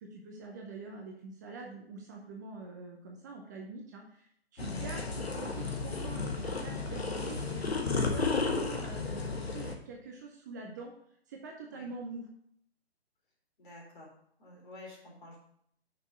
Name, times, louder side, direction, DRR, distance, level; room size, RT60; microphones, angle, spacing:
voice 1, 0.0-10.9 11.3-12.3, right 3 dB, 15° right, 0 dB, 0.6 m, -45 dB
sound 1, 4.6-9.7, left 4 dB, 70° left, 1.4 m, -33 dB
voice 2, 13.6-14.1 14.4-15.4, left 2 dB, 50° left, -3 dB, 3.4 m, -50 dB
6.2 x 5.3 x 5.7 m, 0.67 s
figure-of-eight pair, 135°, 32 cm